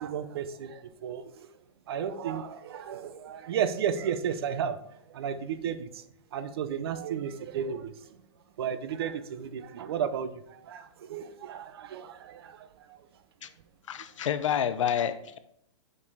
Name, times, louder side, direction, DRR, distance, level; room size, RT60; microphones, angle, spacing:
voice 1, 0.0-1.5 1.9-4.8 5.1-5.9 6.3-8.1 8.6-13.0, right 8 dB, 50° right, 0.6 m, -33 dB
voice 2, 13.9-15.4, left 9 dB, 80° left, 0.6 m, -28 dB
5.3 x 5.3 x 4.0 m
hypercardioid pair, 165°, 16 cm